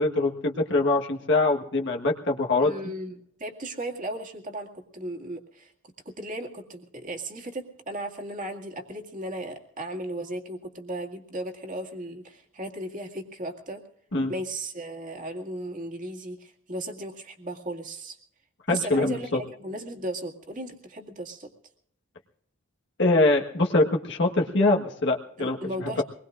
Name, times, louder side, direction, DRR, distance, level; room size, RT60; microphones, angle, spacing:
voice 1, 0.0-2.8 14.1-14.3 18.7-19.4 23.0-26.0, left 2 dB, 65° left, 1 dB, 1.5 m, -23 dB
voice 2, 2.6-5.7 6.1-13.8 14.3-18.2 18.7-21.5 25.4-26.0, right 1 dB, 40° right, 2 dB, 2.2 m, -36 dB
24.5 x 20.5 x 2.5 m, 0.70 s
head